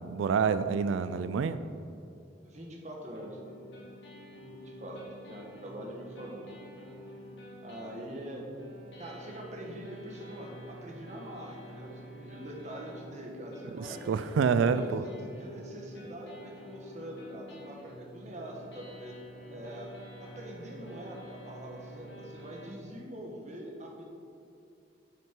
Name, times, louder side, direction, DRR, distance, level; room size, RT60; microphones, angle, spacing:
voice 1, 0.0-1.6 13.8-15.0, right 6 dB, 90° right, 12 dB, 0.3 m, -27 dB
voice 2, 2.4-3.5 4.5-6.5 7.6-8.4 9.0-14.0 14.5-15.1 15.4-19.1 19.5-19.9 20.2-24.0, right 1 dB, 40° right, -1 dB, 1.4 m, -44 dB
sound 1, 3.1-22.7, equal, 70° left, 2.0 m, -48 dB
8.9 x 6.6 x 4.6 m, 2.6 s
head